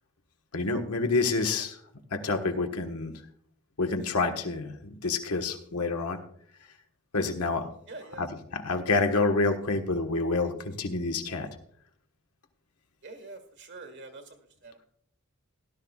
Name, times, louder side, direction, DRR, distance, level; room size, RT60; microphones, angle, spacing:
voice 1, 0.5-1.8 2.1-3.1 3.8-6.2 7.1-7.7 8.2-11.5, left 3 dB, 90° left, 4 dB, 1.5 m, -28 dB
voice 2, 7.9-8.2 13.0-14.8, right 3 dB, 55° right, 7 dB, 1.7 m, -45 dB
17.0 x 12.0 x 2.4 m, 0.64 s
head